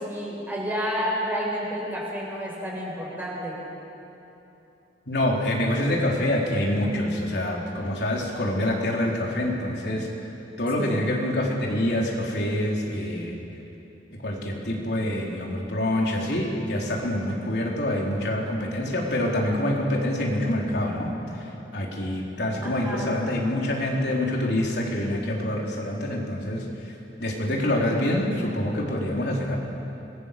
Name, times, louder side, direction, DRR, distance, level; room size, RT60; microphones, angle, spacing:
voice 1, 0.0-3.6 10.8-11.0 22.6-23.1, equal, 10° right, -4 dB, 6.3 m, -30 dB
voice 2, 5.1-10.1 10.6-13.4 14.2-26.9 27.2-29.6, left 1 dB, 65° left, -2 dB, 4.4 m, -26 dB
27.5 x 22.0 x 7.1 m, 2.9 s
head